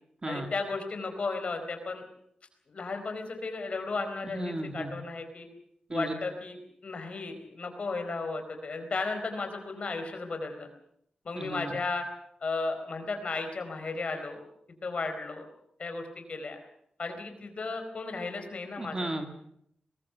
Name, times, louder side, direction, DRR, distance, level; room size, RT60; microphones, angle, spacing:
voice 1, 0.2-2.0 2.7-5.5 5.9-10.7 11.2-12.0 12.4-14.4 14.8-15.5 15.8-16.6 17.0-19.1, left 3 dB, 50° left, 6 dB, 4.5 m, -34 dB
voice 2, 4.3-4.9 5.9-6.1 11.4-11.7 18.8-19.2, right 1 dB, 25° right, 5 dB, 2.2 m, -34 dB
22.0 x 20.5 x 7.0 m, 0.72 s
wide cardioid pair, 170°, 3 cm